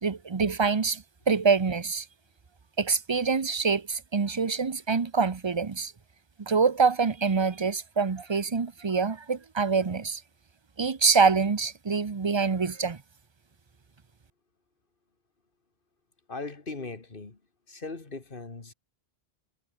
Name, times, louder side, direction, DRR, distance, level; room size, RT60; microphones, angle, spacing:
voice 1, 0.0-2.1 2.8-5.9 6.4-10.2 10.8-13.0, right 5 dB, 30° right, 0.8 m, -25 dB
voice 2, 16.3-17.4 17.7-18.7, left 3 dB, 55° left, 2.4 m, -39 dB
omnidirectional pair, 1.0 m